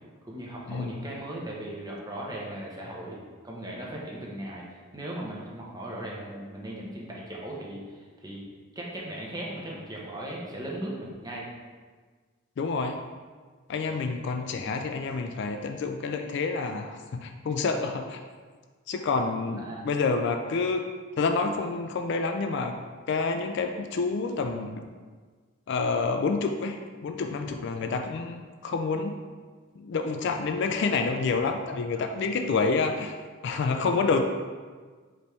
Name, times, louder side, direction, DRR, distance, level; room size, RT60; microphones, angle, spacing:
voice 1, 0.2-3.2 3.4-4.6 4.9-8.4 8.7-11.5 14.5-14.7 18.9-19.0 19.5-19.9 27.7-28.0 32.0-32.7 33.8-34.1, right 1 dB, 20° right, -4 dB, 0.8 m, -38 dB
voice 2, 12.6-13.0 13.7-18.2 18.9-20.9 21.2-22.8 23.1-24.8 25.7-29.1 29.8-33.2 33.4-34.2, left 4 dB, 55° left, 5 dB, 0.3 m, -28 dB
5.2 x 3.1 x 3.3 m, 1.5 s
head